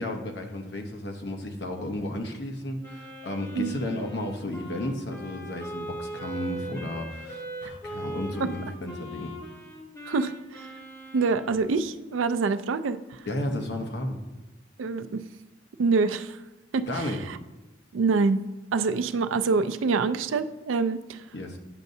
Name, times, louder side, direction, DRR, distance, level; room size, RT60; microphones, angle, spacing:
voice 1, 0.0-9.3 13.3-14.2 16.9-17.2 21.3-21.6, left 1 dB, 60° left, 3 dB, 0.9 m, -33 dB
Wind instrument woodwind instrument, 2.8-11.7, right 1 dB, 15° left, 1.6 m, -40 dB
voice 2, 10.1-10.7 11.1-13.2 14.8-15.3 15.8-16.4 16.7-17.4 17.9-18.4 18.7-21.2, right 4 dB, 90° right, 12 dB, 0.4 m, -26 dB
9.0 x 6.5 x 2.7 m, 1.1 s
head